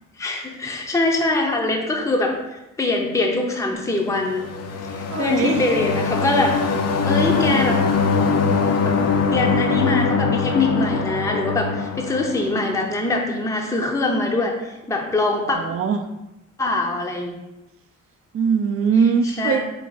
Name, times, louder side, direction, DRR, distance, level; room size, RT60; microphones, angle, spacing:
voice 1, 0.2-2.3 2.8-4.5 4.9-7.8 8.8-9.0 9.3-14.5 14.9-15.6 16.6-17.3 19.0-19.6, left 2 dB, 10° left, 1 dB, 0.6 m, -23 dB
sound 1, 4.2-12.9, left 5 dB, 55° left, 0.5 m, -22 dB
voice 2, 5.1-5.6 7.4-7.6 15.5-16.0 18.3-19.6, right 6 dB, 50° right, 8 dB, 0.5 m, -21 dB
4.7 x 2.5 x 3.9 m, 0.95 s
cardioid pair, 105°, 30 cm